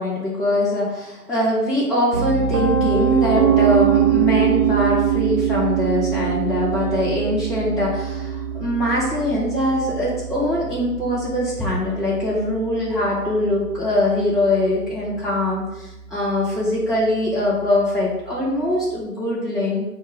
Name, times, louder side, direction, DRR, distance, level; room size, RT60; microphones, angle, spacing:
voice 1, 0.0-19.8, left 1 dB, ahead, -11 dB, 0.5 m, -22 dB
Piano, 2.1-14.0, right 9 dB, 80° right, 0.9 m, -23 dB
5.0 x 2.1 x 3.3 m, 0.97 s
figure-of-eight pair, 170°, 49 cm